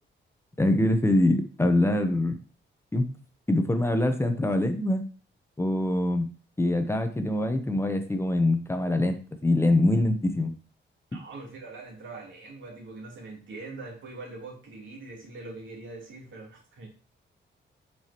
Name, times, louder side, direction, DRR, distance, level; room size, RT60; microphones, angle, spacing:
voice 1, 0.6-2.4 2.9-3.1 3.5-5.0 5.6-6.3 6.6-10.5, left 1 dB, 15° left, 7 dB, 0.7 m, -24 dB
voice 2, 11.1-16.9, right 3 dB, 85° right, -2 dB, 3.1 m, -42 dB
7.7 x 5.8 x 2.9 m, 0.39 s
wide cardioid pair, 145°, 20 cm